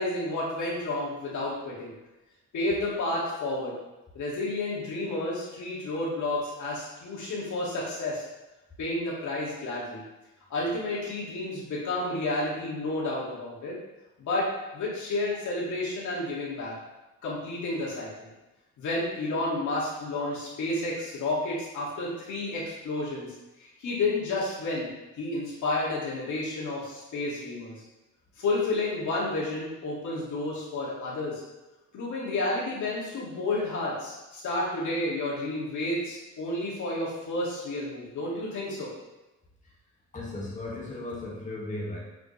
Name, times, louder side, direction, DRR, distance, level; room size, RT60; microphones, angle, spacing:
voice 1, 0.0-1.9 2.5-3.7 4.1-8.2 8.8-10.0 10.5-13.8 14.2-14.5 14.7-16.7 17.2-18.3 18.8-23.3 23.6-24.9 25.1-27.7 28.4-31.4 31.9-38.9, left 2 dB, 75° left, -5 dB, 2.3 m, -31 dB
voice 2, 40.1-42.0, left 2 dB, 25° left, -5 dB, 1.9 m, -36 dB
6.9 x 5.2 x 3.2 m, 1.0 s
cardioid pair, 90°, 30 cm